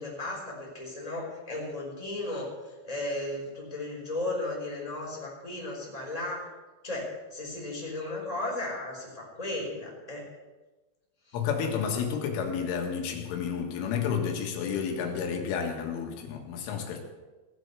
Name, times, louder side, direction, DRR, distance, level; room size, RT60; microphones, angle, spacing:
voice 1, 0.0-6.5 6.8-10.2 11.3-11.4, left 2 dB, 10° left, -3 dB, 4.3 m, -35 dB
voice 2, 11.3-17.0, left 7 dB, 90° left, 3 dB, 4.3 m, -31 dB
17.5 x 8.0 x 8.3 m, 1.2 s
omnidirectional pair, 5.4 m